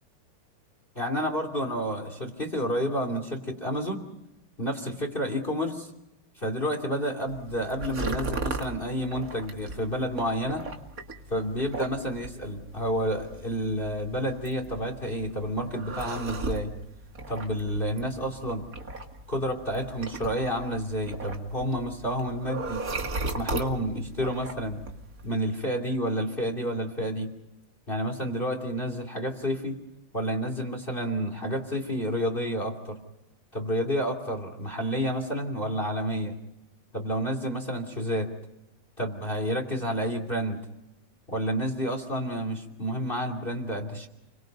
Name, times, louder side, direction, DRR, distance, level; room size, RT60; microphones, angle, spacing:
voice 1, 0.9-4.1 4.6-5.9 6.4-10.7 11.3-16.7 17.3-18.6 19.3-22.9 23.2-24.8 25.2-27.3 27.9-29.8 30.1-33.0 33.5-36.3 36.9-38.3 39.0-40.6 41.3-44.1, equal, 25° left, 5 dB, 3.0 m, -30 dB
sound 1, 7.3-25.3, right 2 dB, 40° right, 2.4 m, -38 dB
30.0 x 23.5 x 5.3 m, 0.94 s
omnidirectional pair, 2.4 m